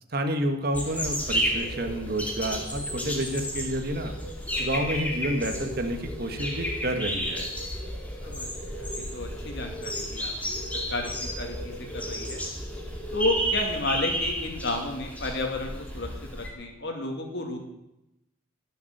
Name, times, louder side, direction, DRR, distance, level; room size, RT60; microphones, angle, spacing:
voice 1, 0.1-4.2 4.6-7.5, right 1 dB, 45° right, 6 dB, 1.6 m, -29 dB
sound 1, 0.7-16.5, equal, 5° left, 2.6 m, -32 dB
voice 2, 8.2-12.4 13.1-17.6, left 2 dB, 55° left, 3 dB, 2.6 m, -32 dB
19.0 x 7.2 x 8.0 m, 0.90 s
head